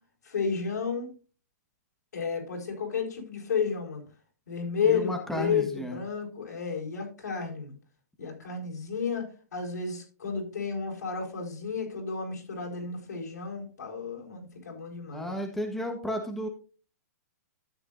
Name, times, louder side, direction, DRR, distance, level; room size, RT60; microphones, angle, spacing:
voice 1, 0.2-1.1 2.1-4.0 4.5-7.8 8.2-15.3, left 5 dB, 85° left, 0 dB, 5.0 m, -32 dB
voice 2, 4.8-6.0 15.1-16.5, left 1 dB, 5° left, 3 dB, 1.3 m, -33 dB
12.5 x 8.4 x 2.6 m, 0.36 s
hypercardioid pair, 140°, 9 cm